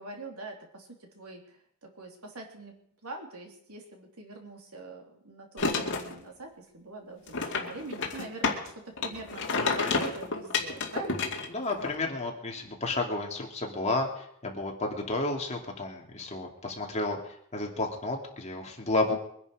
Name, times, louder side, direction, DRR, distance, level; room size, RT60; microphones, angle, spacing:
voice 1, 0.0-2.8 3.0-9.4 9.8-11.3 19.1-19.2, right 2 dB, 85° right, 2 dB, 3.3 m, -44 dB
sound 1, 5.6-6.1 7.3-8.7 9.0-11.9, left 4 dB, 60° left, 2.2 m, -30 dB
voice 2, 9.6-10.0 11.5-19.2, left 2 dB, 30° left, 1 dB, 2.7 m, -32 dB
23.0 x 10.5 x 5.0 m, 0.69 s
head